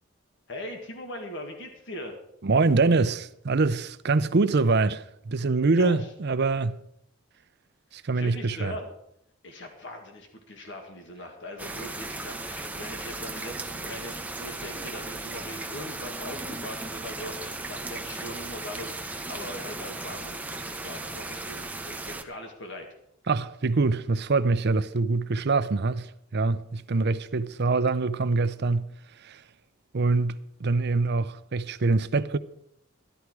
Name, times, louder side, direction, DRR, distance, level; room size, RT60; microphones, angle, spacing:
voice 1, 0.5-2.2 5.7-6.1 8.2-8.9 9.4-22.9, left 1 dB, 65° left, 1.8 m, -40 dB
voice 2, 2.4-6.8 7.9-8.7 23.3-28.9 29.2-29.4 29.9-32.4, right 3 dB, 55° right, 0.6 m, -24 dB
sound 1, 11.6-22.2, right 2 dB, 10° right, 0.7 m, -36 dB
13.0 x 11.5 x 4.7 m
head